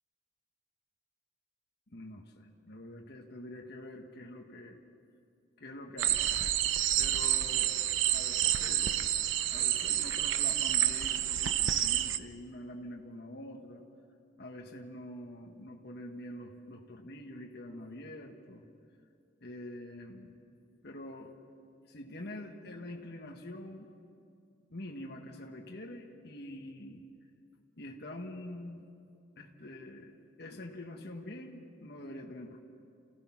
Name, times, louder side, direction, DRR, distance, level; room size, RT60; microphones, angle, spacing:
voice 1, 1.9-4.8 5.6-6.2 7.0-7.8 8.1-9.1 9.5-13.8 14.4-18.6 19.4-20.4 20.8-21.4 21.9-23.9 24.7-27.0 27.8-28.8 29.4-32.6, left 1 dB, 60° left, 1 dB, 1.5 m, -45 dB
sound 1, 6.0-12.2, right 11 dB, 85° right, 0.7 m, -29 dB
28.5 x 16.0 x 6.0 m, 2.4 s
head